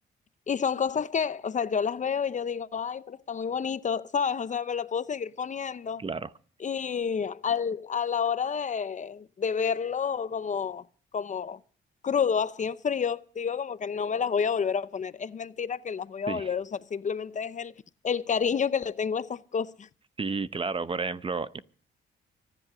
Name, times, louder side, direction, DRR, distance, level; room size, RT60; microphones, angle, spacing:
voice 1, 0.5-6.0 6.6-10.9 11.1-11.6 12.0-17.7 18.0-19.9, left 6 dB, 40° left, 0.7 m, -29 dB
voice 2, 6.0-6.3 16.3-16.5 20.2-21.6, right 4 dB, 25° right, 0.8 m, -31 dB
24.5 x 11.0 x 4.9 m
cardioid pair, 90°, 20 cm